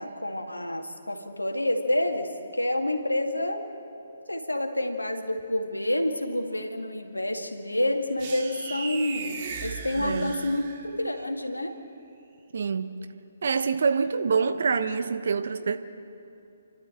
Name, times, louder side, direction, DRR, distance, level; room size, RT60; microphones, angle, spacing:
voice 1, 0.0-3.6 4.3-11.8, left 1 dB, 90° left, 4 dB, 2.1 m, -28 dB
sound 1, 8.2-11.1, right 5 dB, 35° right, 2.4 m, -37 dB
voice 2, 10.0-10.4 12.5-12.9 13.4-15.8, right 5 dB, 60° right, 9 dB, 1.1 m, -26 dB
29.0 x 12.0 x 7.8 m, 2.7 s
figure-of-eight pair, 135°, 0 cm